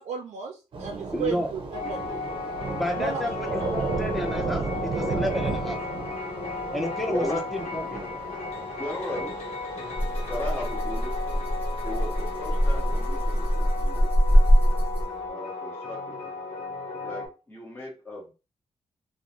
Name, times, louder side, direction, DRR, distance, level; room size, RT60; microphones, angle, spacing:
voice 1, 0.0-2.1 2.9-3.2, right 5 dB, 90° right, 1 dB, 0.4 m, -34 dB
Thunder / Rain, 0.7-13.5, right 3 dB, 50° right, 0.6 m, -35 dB
voice 2, 1.1-1.5 2.7-5.8 6.7-8.0, equal, ahead, 2 dB, 0.5 m, -31 dB
sound 1, 1.7-17.3, left 3 dB, 80° left, 0.8 m, -35 dB
voice 3, 7.1-7.4 8.7-9.3 9.8-10.0 10.3-11.2 11.8-14.1 15.3-16.3 17.0-18.3, left 1 dB, 20° left, -3 dB, 1.1 m, -36 dB
Rattle (instrument), 10.0-15.3, equal, 15° right, 1.1 m, -23 dB
2.4 x 2.1 x 2.9 m, 0.30 s
wide cardioid pair, 130°, 11 cm